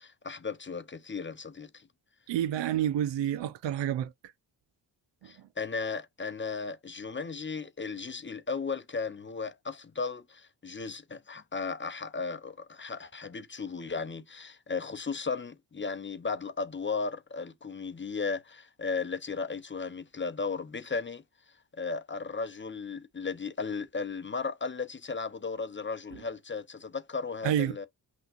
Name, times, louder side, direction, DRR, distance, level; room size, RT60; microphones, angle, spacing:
voice 1, 0.0-1.9 5.2-21.2 21.7-27.9, left 4 dB, 25° left, 0.7 m, -35 dB
voice 2, 2.3-4.1 27.4-27.9, right 11 dB, 70° right, 0.6 m, -29 dB
5.7 x 3.1 x 2.5 m
supercardioid pair, 45°, 46 cm